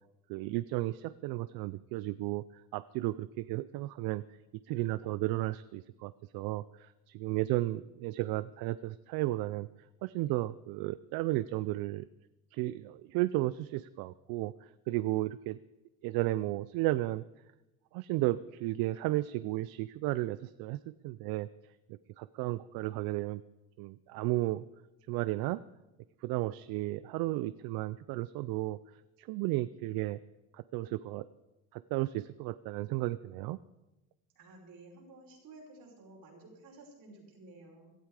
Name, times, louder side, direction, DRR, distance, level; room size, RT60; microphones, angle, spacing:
voice 1, 0.3-4.2 4.7-9.7 10.0-12.1 12.5-14.5 14.9-15.6 16.0-17.2 17.9-21.5 21.9-23.4 23.8-24.6 25.1-25.6 26.2-28.8 29.2-30.2 30.5-31.3 31.7-33.6, right 17 dB, 90° right, 16 dB, 0.5 m, -33 dB
voice 2, 34.4-37.9, right 2 dB, 75° right, -1 dB, 5.5 m, -53 dB
16.5 x 12.5 x 4.8 m, 1.0 s
cardioid pair, 85°, 35 cm